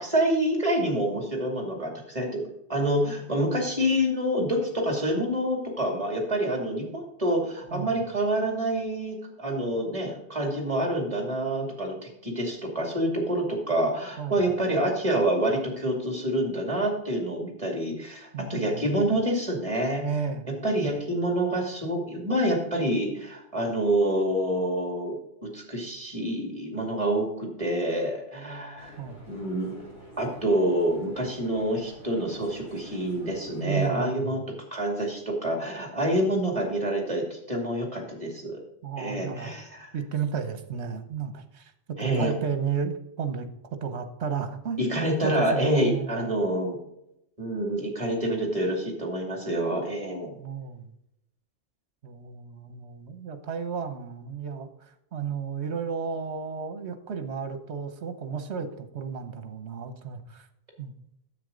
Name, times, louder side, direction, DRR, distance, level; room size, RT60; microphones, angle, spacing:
voice 1, 0.0-2.4 2.7-20.0 20.6-29.0 29.3-29.7 30.2-34.4 34.7-38.6 39.0-39.9 42.0-42.3 44.8-46.8 47.4-50.4, right 1 dB, 30° right, 1 dB, 2.6 m, -27 dB
voice 2, 7.7-8.0 14.2-14.4 18.3-18.9 20.0-20.5 29.0-29.2 33.6-34.4 38.8-39.5 39.9-41.7 42.0-43.5 43.8-46.3 50.4-50.9 52.0-54.7 55.1-60.5 60.8-60.9, right 6 dB, 75° right, 9 dB, 1.3 m, -33 dB
sound 1, 28.8-33.9, equal, 60° left, 3.9 m, -49 dB
9.8 x 7.7 x 3.9 m, 0.82 s
omnidirectional pair, 1.2 m